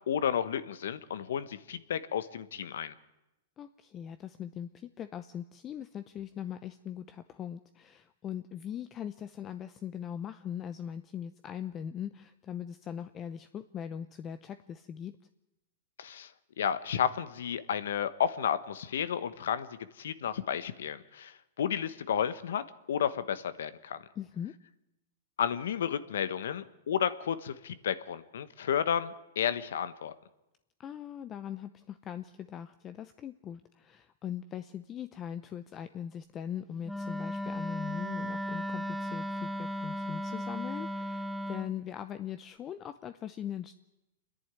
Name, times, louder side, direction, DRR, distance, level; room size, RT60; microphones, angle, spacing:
voice 1, 0.1-2.9 16.0-16.3 16.6-24.0 25.4-30.1, left 8 dB, 80° left, 14 dB, 1.2 m, -32 dB
voice 2, 3.6-15.2 24.2-24.5 30.8-43.8, left 9 dB, 25° left, 11 dB, 0.7 m, -40 dB
Wind instrument woodwind instrument, 36.8-41.7, equal, ahead, 0.9 m, -36 dB
26.5 x 10.5 x 9.6 m, 0.96 s
hypercardioid pair, 130°, 0 cm